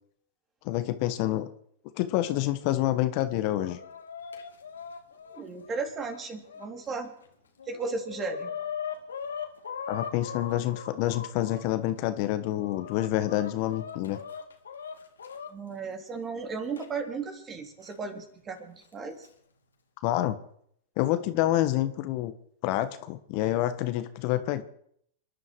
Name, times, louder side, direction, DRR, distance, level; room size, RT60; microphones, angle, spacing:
voice 1, 0.6-1.5 2.0-3.8 9.9-14.2 20.0-20.4 21.0-22.3 22.6-24.6, left 14 dB, 50° left, 11 dB, 1.3 m, -27 dB
Chicken rooster, 3.2-6.7 7.2-7.3 7.6-11.6 12.2-15.5 16.8-16.9 17.9-18.0 18.9-19.3, left 7 dB, 90° left, 2.3 m, -40 dB
voice 2, 5.3-7.1 7.7-8.5 15.5-19.3, right 4 dB, 25° right, 5 dB, 3.6 m, -35 dB
27.0 x 11.0 x 4.8 m, 0.68 s
hypercardioid pair, 110°, 0 cm